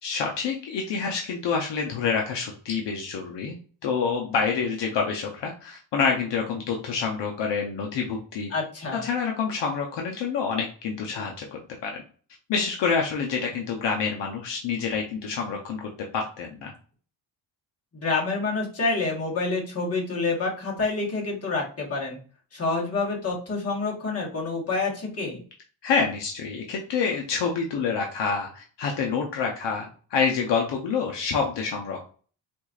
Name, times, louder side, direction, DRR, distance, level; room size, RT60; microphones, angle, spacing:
voice 1, 0.0-3.6 3.8-8.5 8.9-12.0 12.5-16.7 25.8-32.1, left 5 dB, 70° left, 1 dB, 0.8 m, -27 dB
voice 2, 8.5-9.0 17.9-22.2 22.5-25.4, left 3 dB, 35° left, -2 dB, 1.4 m, -27 dB
4.4 x 2.6 x 2.4 m, 0.41 s
cardioid pair, 120°, 44 cm